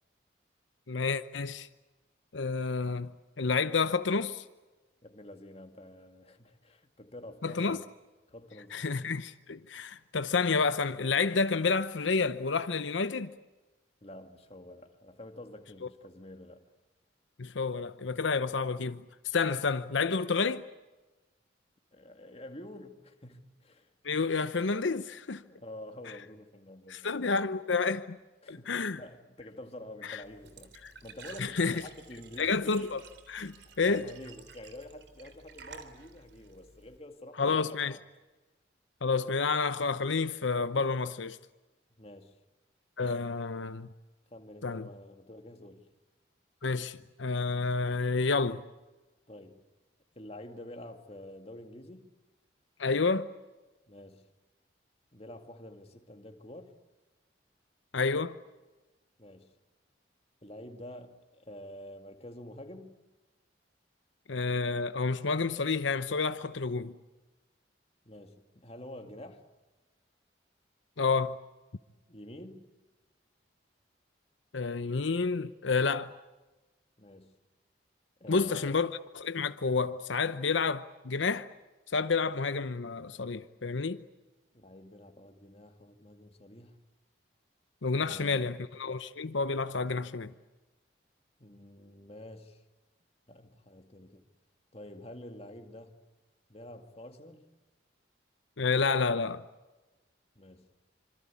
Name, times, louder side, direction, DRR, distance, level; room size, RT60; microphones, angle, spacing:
voice 1, 0.9-1.7 2.3-3.1 3.4-4.4 7.4-7.8 8.7-13.3 17.4-20.6 24.0-25.4 26.9-28.2 28.5-29.0 30.1-30.2 31.4-31.8 32.4-34.1 37.4-38.0 39.0-41.4 43.0-43.9 44.6-44.9 46.6-48.6 52.8-53.3 57.9-58.4 64.3-66.9 71.0-71.4 74.5-76.1 78.3-81.5 81.9-84.0 87.8-90.3 98.6-99.4, left 4 dB, 85° left, 0.8 m, -29 dB
voice 2, 5.0-7.9 8.3-8.8 9.9-10.0 14.0-16.7 21.9-23.9 25.4-27.4 28.4-32.7 33.6-38.0 42.0-42.4 44.3-45.9 49.3-49.6 50.2-52.1 53.9-54.3 55.1-56.7 59.2-59.5 60.4-63.0 68.0-69.4 72.1-72.7 77.0-77.4 78.2-78.7 84.5-86.8 88.0-88.6 91.4-92.6 93.3-94.2 94.7-96.0 96.5-97.5 100.4-100.7, left 1 dB, 30° left, 2.3 m, -48 dB
Glass / Trickle dribble / Fill (with liquid), 30.2-37.0, right 4 dB, 70° right, 3.3 m, -52 dB
26.5 x 26.0 x 8.5 m
head